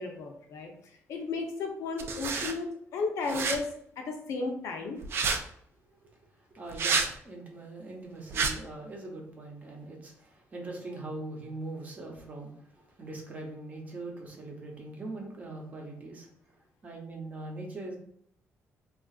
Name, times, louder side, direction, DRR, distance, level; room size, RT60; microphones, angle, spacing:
voice 1, 0.0-3.7 4.0-5.0, left 3 dB, 75° left, 3 dB, 0.7 m, -34 dB
sound 1, 2.0-2.5 3.3-3.6 5.0-5.4 6.7-7.1 8.3-8.5, right 5 dB, 50° right, 0.3 m, -28 dB
voice 2, 6.5-16.3 16.8-17.9, right 2 dB, 30° right, 0 dB, 0.7 m, -41 dB
3.6 x 2.4 x 2.4 m, 0.66 s
cardioid pair, 175°, 5 cm